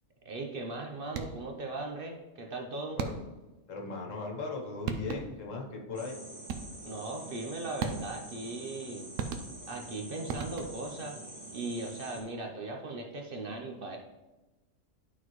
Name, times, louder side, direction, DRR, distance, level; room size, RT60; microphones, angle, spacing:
voice 1, 0.2-3.0 6.8-9.1 9.7-11.2 11.5-14.0, right 2 dB, 50° right, 2 dB, 0.9 m, -38 dB
sound 1, 1.1-1.6 3.0-3.5 4.5-4.6 4.9-5.5 6.5-6.9 7.8-8.3 9.2-9.8 10.3-11.0, right 5 dB, 75° right, 1.0 m, -37 dB
voice 2, 3.0-3.3 3.7-6.2, left 3 dB, 75° left, 0 dB, 1.5 m, -38 dB
sound 2, 5.9-12.2, right 1 dB, 15° right, 1.7 m, -46 dB
11.5 x 4.0 x 3.1 m, 1.1 s
omnidirectional pair, 1.3 m